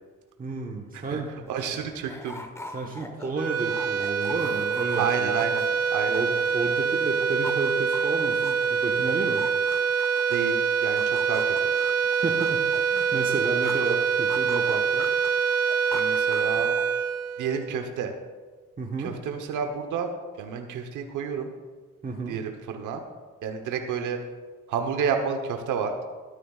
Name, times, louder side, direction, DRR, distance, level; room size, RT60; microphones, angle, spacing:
voice 1, 0.4-1.3 1.6-1.8 2.7-5.5 6.1-9.4 12.2-15.1 18.8-19.1 22.0-22.4, right 3 dB, 30° right, 0 dB, 1.3 m, -32 dB
sound 1, 0.9-1.0 1.2-6.7 7.0-10.5 11.0-14.0 14.3-17.0, left 1 dB, 10° left, 1.2 m, -42 dB
voice 2, 1.5-2.4 5.0-6.2 10.3-11.5 15.9-16.8 17.4-18.1 19.0-20.1 20.4-21.5 22.3-23.0 23.4-24.2 24.7-25.9, right 6 dB, 85° right, 5 dB, 1.1 m, -30 dB
sound 2, 3.3-17.9, right 6 dB, 55° right, 0.8 m, -25 dB
13.5 x 12.5 x 2.4 m, 1.4 s
cardioid pair, 90°, 30 cm